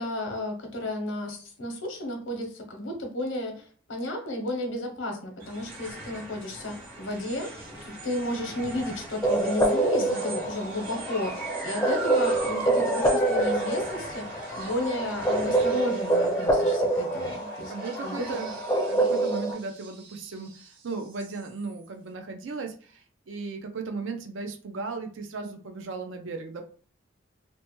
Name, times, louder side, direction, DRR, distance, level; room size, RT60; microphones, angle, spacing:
voice 1, 0.0-17.7 18.0-18.4, left 1 dB, 85° left, 3 dB, 0.8 m, -33 dB
sound 1, 5.4-21.9, right 1 dB, 45° right, 0.9 m, -40 dB
sound 2, 9.2-19.5, right 2 dB, 15° left, 0.4 m, -26 dB
voice 2, 10.0-10.4 17.7-18.6 18.9-26.6, right 4 dB, 80° right, 4 dB, 0.5 m, -36 dB
2.9 x 2.1 x 2.9 m, 0.42 s
head